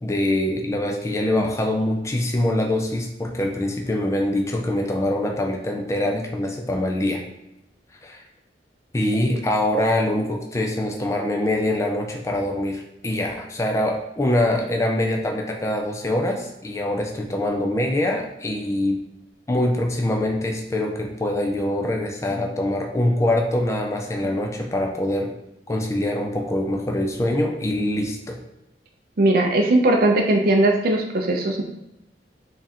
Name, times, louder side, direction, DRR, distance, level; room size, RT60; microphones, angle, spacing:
voice 1, 0.0-7.2 8.0-8.2 8.9-19.0 19.5-25.3 25.7-28.4, left 1 dB, 15° left, 2 dB, 0.4 m, -24 dB
voice 2, 29.2-31.6, right 2 dB, 55° right, 2 dB, 0.5 m, -19 dB
3.5 x 2.4 x 4.2 m, 0.89 s
head